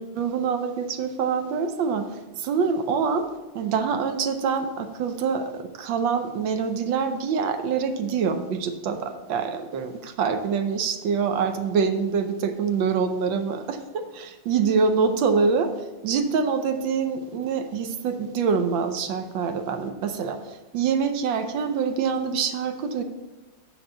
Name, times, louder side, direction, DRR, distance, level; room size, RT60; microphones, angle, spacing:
voice 1, 0.0-3.3 3.5-14.1 14.5-15.7 16.0-23.0, right 5 dB, 75° right, 8 dB, 1.4 m, -25 dB
6.6 x 6.3 x 5.6 m, 1.2 s
omnidirectional pair, 2.2 m